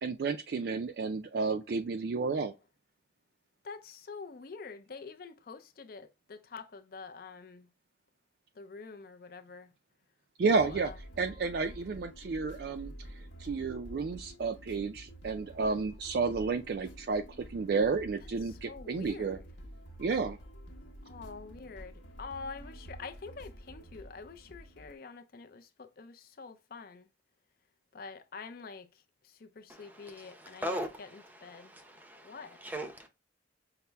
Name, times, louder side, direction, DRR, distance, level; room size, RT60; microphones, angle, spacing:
voice 1, 0.0-2.5 10.4-12.9 13.4-19.4 20.0-20.4, right 4 dB, 55° right, 0.3 m, -31 dB
voice 2, 3.7-7.6 8.6-9.7 10.5-11.0 18.7-19.4 21.1-21.9 22.2-27.0 27.9-28.8 29.6-31.7 32.2-32.6, left 4 dB, 50° left, 0.4 m, -46 dB
sound 1, 10.5-24.9, equal, 75° left, 0.9 m, -49 dB
voice 3, 29.7-33.1, equal, 10° right, 0.6 m, -40 dB
5.7 x 2.0 x 3.3 m
head